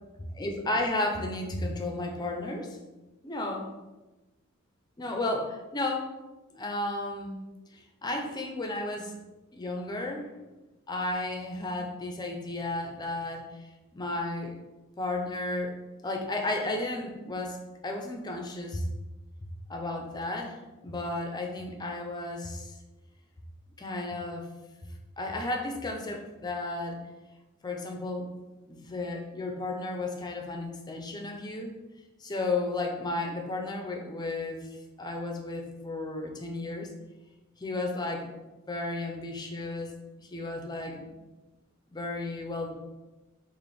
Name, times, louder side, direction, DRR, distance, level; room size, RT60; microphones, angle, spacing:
voice 1, 0.4-2.8 3.2-3.7 5.0-6.1 6.5-7.4 7.7-9.2 9.5-10.3 10.9-14.6 15.0-15.7 16.0-18.8 19.7-22.7 23.8-24.5 25.2-27.0 27.6-28.3 28.7-31.8 32.2-34.7 35.0-36.9 37.6-38.3 38.7-39.9 40.2-41.1 41.9-42.8, left 2 dB, 20° left, 2 dB, 0.4 m, -33 dB
3.3 x 2.5 x 4.1 m, 1.1 s
head